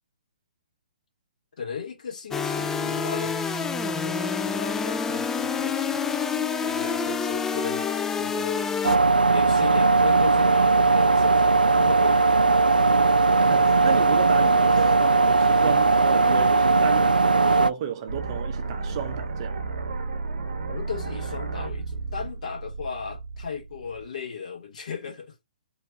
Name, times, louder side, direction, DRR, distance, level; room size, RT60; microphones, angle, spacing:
voice 1, 1.6-6.2 6.6-7.8 8.1-9.0 9.3-12.3 12.7-12.9 14.8-14.9 20.7-25.3, left 6 dB, 55° left, 1.7 m, -37 dB
sound 1, 2.3-9.0, left 5 dB, 10° left, 0.3 m, -27 dB
sound 2, 8.8-17.7, right 3 dB, 85° right, 0.3 m, -19 dB
voice 2, 13.4-19.7, right 8 dB, 40° right, 0.7 m, -33 dB
sound 3, 18.1-24.1, right 3 dB, 65° right, 0.9 m, -33 dB
3.1 x 2.8 x 3.5 m
figure-of-eight pair, 125°, 5 cm